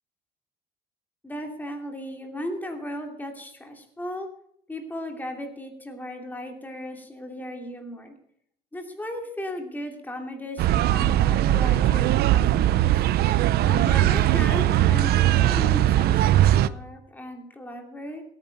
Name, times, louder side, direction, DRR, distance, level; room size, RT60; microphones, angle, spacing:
voice 1, 1.2-4.3 4.7-8.2 8.7-13.1 13.6-18.2, left 1 dB, 10° left, 3 dB, 2.8 m, -36 dB
sound 1, 10.6-16.7, right 13 dB, 70° right, 0.6 m, -20 dB
17.0 x 9.6 x 5.3 m, 0.68 s
cardioid pair, 135°, 17 cm